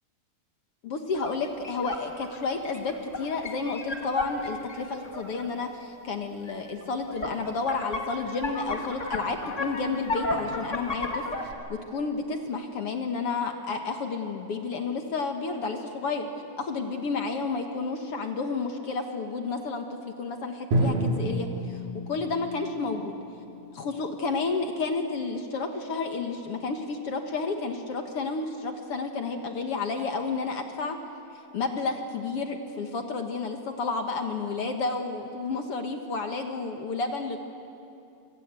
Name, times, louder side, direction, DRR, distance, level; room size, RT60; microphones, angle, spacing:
voice 1, 0.8-11.2 11.7-16.3 16.6-21.8 22.1-23.1 23.7-31.0 31.5-37.4, left 4 dB, 55° left, 4 dB, 1.9 m, -31 dB
sound 1, 1.1-5.4 6.5-6.6 6.8-11.5, left 2 dB, 25° left, 1.7 m, -34 dB
Drum, 20.7-24.7, right 1 dB, 75° right, 5.2 m, -30 dB
26.0 x 25.5 x 8.3 m, 2.6 s
omnidirectional pair, 4.1 m